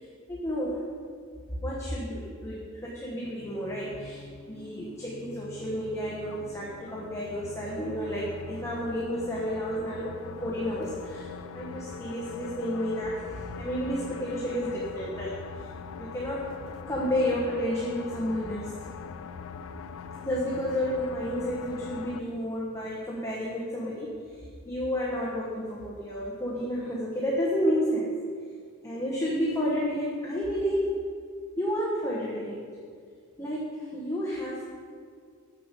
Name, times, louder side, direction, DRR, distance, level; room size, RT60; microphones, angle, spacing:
voice 1, 0.3-0.8 1.6-15.7 16.0-16.5 16.9-18.9 20.2-28.2 28.8-30.9 31.6-32.6 33.4-34.8, equal, 15° left, -5 dB, 1.1 m, -31 dB
sound 1, 3.2-22.2, left 5 dB, 65° left, 0.4 m, -42 dB
7.0 x 6.7 x 6.7 m, 2.1 s
head